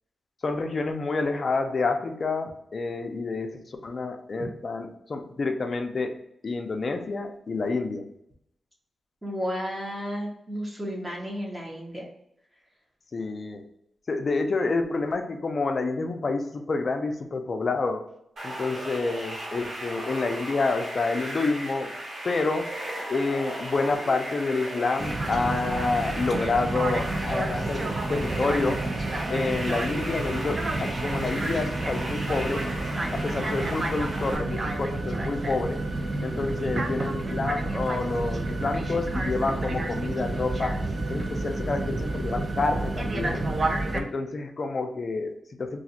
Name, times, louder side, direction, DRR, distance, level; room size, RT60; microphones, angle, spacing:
voice 1, 0.4-6.2 6.4-8.1 13.1-13.6 14.1-18.0 18.4-22.0 22.2-22.7 23.1-28.8 29.3-32.6 33.1-35.8 36.2-40.8 41.1-43.5 43.9-45.8, left 3 dB, 50° left, 5 dB, 0.5 m, -28 dB
voice 2, 9.2-12.0, equal, 15° right, -3 dB, 0.9 m, -32 dB
sound 1, 18.4-34.4, right 1 dB, 65° right, 1.4 m, -36 dB
sound 2, 25.0-44.0, right 2 dB, 40° right, 0.5 m, -30 dB
2.5 x 2.4 x 4.1 m, 0.77 s
cardioid pair, 90°, 0 cm